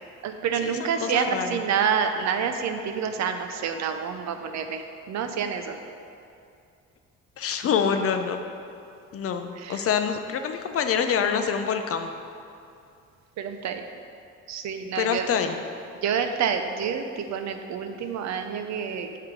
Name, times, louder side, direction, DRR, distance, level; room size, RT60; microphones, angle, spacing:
voice 1, 0.2-5.8 9.6-9.9 13.4-13.8 14.5-15.3 16.0-19.2, right 7 dB, 65° right, 7 dB, 0.5 m, -28 dB
voice 2, 1.0-1.6 7.4-8.4 9.1-12.1 15.0-15.6, left 7 dB, 50° left, 7 dB, 0.5 m, -26 dB
6.6 x 4.5 x 3.6 m, 2.5 s
cardioid pair, 90°, 30 cm